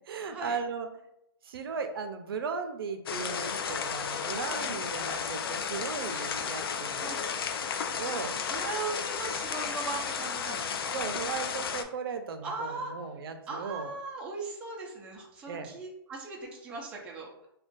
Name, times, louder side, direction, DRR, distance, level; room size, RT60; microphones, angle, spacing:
voice 1, 0.1-0.9 1.4-7.1 8.0-8.4 10.9-13.9 15.5-15.7, right 5 dB, 70° right, 7 dB, 0.5 m, -36 dB
sound 1, 3.1-11.8, left 6 dB, 70° left, 0.4 m, -33 dB
voice 2, 4.6-4.9 7.0-7.2 8.5-10.9 12.4-12.9 13.5-17.3, right 3 dB, 10° right, -2 dB, 0.3 m, -39 dB
2.4 x 2.2 x 3.8 m, 0.78 s
hypercardioid pair, 155°, 13 cm